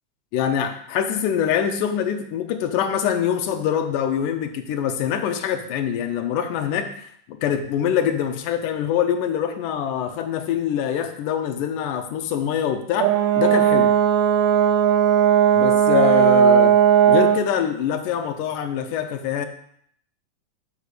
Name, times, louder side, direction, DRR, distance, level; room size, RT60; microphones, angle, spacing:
voice 1, 0.3-7.1 7.4-13.1 13.4-13.9 15.5-16.8 17.1-19.5, left 9 dB, 80° left, 7 dB, 2.3 m, -24 dB
Brass instrument, 13.0-17.5, right 9 dB, 80° right, 1.5 m, -16 dB
6.0 x 4.9 x 6.6 m, 0.67 s
omnidirectional pair, 3.6 m